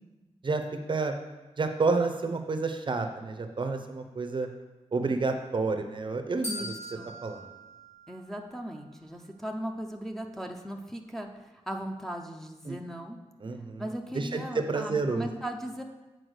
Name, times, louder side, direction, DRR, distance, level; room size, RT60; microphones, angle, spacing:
voice 1, 1.6-4.5 4.9-6.7 7.2-7.5 12.7-12.8 13.4-13.8 14.1-15.3, right 3 dB, 45° right, 6 dB, 0.6 m, -29 dB
sound 1, 6.4-8.7, equal, 90° left, 3.1 m, -41 dB
voice 2, 6.4-7.1 8.1-13.2 13.8-15.8, right 1 dB, 5° left, 1 dB, 0.6 m, -38 dB
8.0 x 4.4 x 6.3 m, 1.1 s
wide cardioid pair, 140°, 11 cm